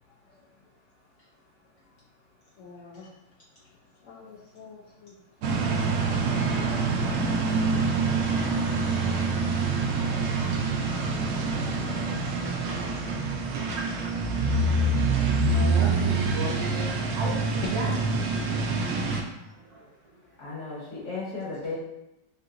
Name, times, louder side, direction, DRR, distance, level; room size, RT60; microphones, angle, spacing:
voice 1, 2.6-3.1 3.6-3.7 4.0-5.2 12.8-13.0 17.8-18.2, left 5 dB, 90° left, -6 dB, 0.6 m, -45 dB
sound 1, 5.4-19.2, right 3 dB, 85° right, 0.6 m, -26 dB
voice 2, 14.7-17.9 19.4-20.2, right 3 dB, 65° right, -3 dB, 1.2 m, -36 dB
voice 3, 20.4-21.8, left 3 dB, 50° left, -7 dB, 1.1 m, -35 dB
3.3 x 2.7 x 2.5 m, 0.91 s
omnidirectional pair, 1.9 m